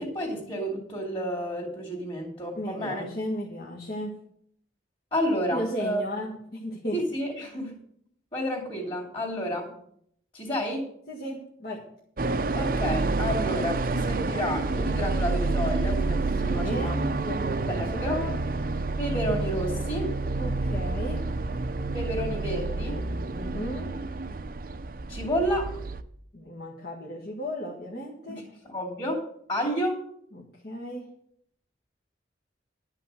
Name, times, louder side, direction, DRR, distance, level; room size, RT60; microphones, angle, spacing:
voice 1, 0.0-3.0 5.1-6.0 6.9-7.8 8.3-9.7 10.3-10.8 12.6-17.0 17.6-18.2 19.0-20.2 21.9-23.0 25.1-25.7 28.3-29.2 29.5-30.0, equal, 30° left, -7 dB, 2.8 m, -30 dB
voice 2, 2.5-4.2 5.5-7.0 11.1-11.8 16.4-18.3 20.4-21.3 23.3-23.9 26.3-28.4 30.3-31.1, left 1 dB, 60° left, -3 dB, 1.7 m, -35 dB
sound 1, 12.2-26.0, right 3 dB, 50° right, 0.6 m, -29 dB
12.0 x 5.8 x 7.6 m, 0.68 s
head